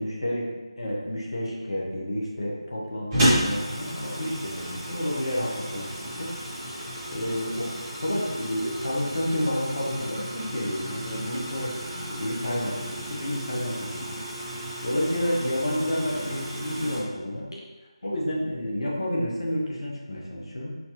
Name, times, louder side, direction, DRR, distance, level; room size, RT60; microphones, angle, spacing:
voice 1, 0.0-6.3 6.7-6.8 7.1-7.8 8.0-17.6 18.0-20.8, equal, 60° left, -3 dB, 1.0 m, -30 dB
sound 1, 3.1-17.0, equal, 15° right, 0.9 m, -32 dB
4.3 x 2.7 x 2.9 m, 1.2 s
figure-of-eight pair, 160°, 3 cm